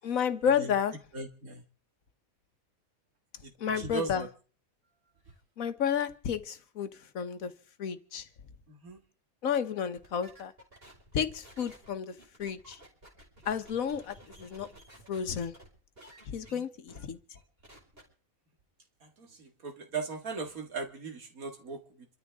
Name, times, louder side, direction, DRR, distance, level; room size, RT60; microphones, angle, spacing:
voice 1, 0.0-0.9 3.6-4.3 5.6-7.5 7.8-8.3 9.4-10.5 11.1-12.8 13.4-14.7 15.1-15.5 16.2-17.2, left 7 dB, 75° left, 10 dB, 1.5 m, -31 dB
voice 2, 1.1-1.6 3.4-4.3 8.7-9.0 16.5-16.6 19.0-22.1, right 4 dB, 80° right, 5 dB, 2.5 m, -39 dB
sound 1, 10.0-15.7 16.0-16.5 16.9-17.0 17.3-18.0, right 1 dB, 40° right, 5.3 m, -54 dB
27.0 x 13.5 x 3.6 m, 0.42 s
omnidirectional pair, 1.5 m